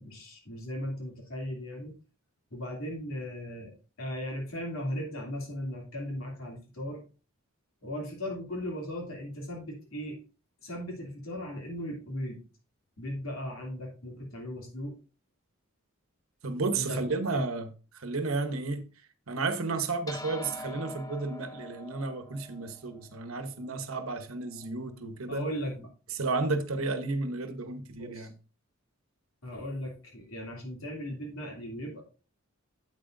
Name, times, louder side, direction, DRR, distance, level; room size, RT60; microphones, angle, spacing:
voice 1, 0.0-1.9 2.5-3.7 4.0-7.0 7.8-10.2 10.6-12.4 13.0-14.9 16.7-17.5 25.3-25.9 28.0-28.3 29.4-32.0, equal, 80° left, 2.9 m, -37 dB
voice 2, 16.4-18.8 19.3-25.4 26.2-28.3, right 3 dB, 85° right, 1.0 m, -32 dB
sound 1, 20.1-24.7, left 1 dB, 15° left, 0.5 m, -45 dB
8.8 x 8.1 x 2.6 m
head